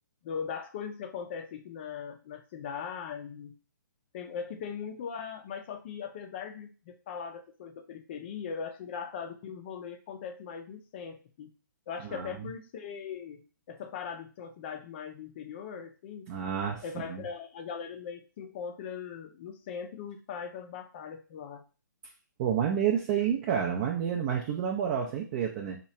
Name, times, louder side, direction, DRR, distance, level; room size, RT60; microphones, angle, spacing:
voice 1, 0.2-3.5 4.1-11.5 11.9-13.4 13.7-16.3 16.8-21.6, left 6 dB, 30° left, 6 dB, 0.5 m, -40 dB
voice 2, 12.0-12.5 16.3-16.8 17.1-17.2 22.4-25.8, right 8 dB, 25° right, -1 dB, 0.4 m, -29 dB
2.9 x 2.4 x 4.2 m, 0.36 s
hypercardioid pair, 155°, 11 cm